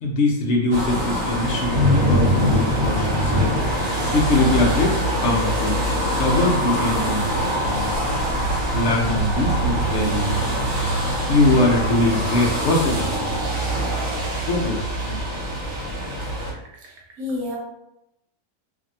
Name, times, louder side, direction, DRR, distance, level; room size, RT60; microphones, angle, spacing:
voice 1, 0.0-3.5 4.0-5.8 6.2-7.9 8.7-10.7 11.3-13.3 14.5-15.2, left 2 dB, 65° left, 0 dB, 0.7 m, -22 dB
sound 1, 0.7-16.5, equal, 55° right, 1.0 m, -23 dB
voice 2, 16.8-17.6, left 2 dB, 75° right, -2 dB, 1.2 m, -30 dB
2.6 x 2.6 x 2.6 m, 0.87 s
omnidirectional pair, 1.6 m